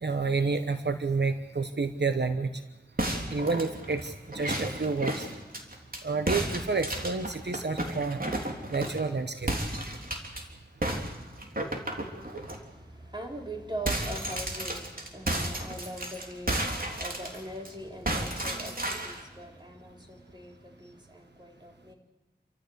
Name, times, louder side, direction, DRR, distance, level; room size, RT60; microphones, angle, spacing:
voice 1, 0.0-2.6 3.3-5.3 6.0-8.2 8.7-9.5 12.3-12.4, right 4 dB, 75° right, 8 dB, 1.0 m, -29 dB
sound 1, 3.0-6.0 6.3-9.1 9.5-10.4 10.8-12.6 13.0-13.1 13.4-17.7 18.1-19.2, right 1 dB, 55° right, 3.5 m, -33 dB
voice 2, 11.7-21.9, right 1 dB, 25° right, 1 dB, 4.1 m, -42 dB
28.0 x 14.5 x 8.1 m, 1.2 s
wide cardioid pair, 45°, 18 cm